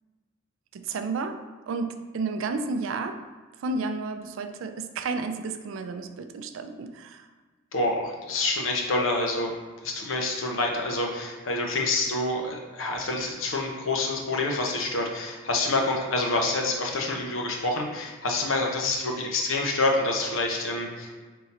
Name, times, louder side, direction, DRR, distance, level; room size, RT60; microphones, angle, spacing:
voice 1, 0.7-3.2 3.6-7.3, right 4 dB, 70° right, 9 dB, 0.3 m, -32 dB
voice 2, 7.7-9.5 9.8-21.2, left 2 dB, 70° left, 1 dB, 0.7 m, -27 dB
3.7 x 2.8 x 4.2 m, 1.4 s
head